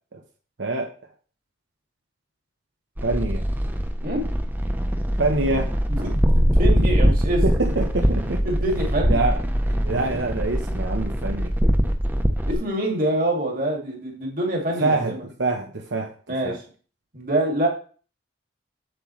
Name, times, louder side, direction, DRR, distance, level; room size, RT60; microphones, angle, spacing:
voice 1, 0.6-0.9 3.0-3.4 5.2-5.7 7.0-7.1 7.4-8.4 9.1-9.4 9.8-11.5 14.8-16.1 16.4-16.6, right 2 dB, 85° right, 2 dB, 1.0 m, -25 dB
sound 1, 3.0-12.6, equal, 10° right, 0.7 m, -22 dB
voice 2, 6.1-7.4 8.5-9.2 9.7-9.8 12.5-15.2 16.3-16.6 17.1-17.7, right 1 dB, 50° right, 0 dB, 2.3 m, -25 dB
7.7 x 7.3 x 3.2 m, 0.39 s
head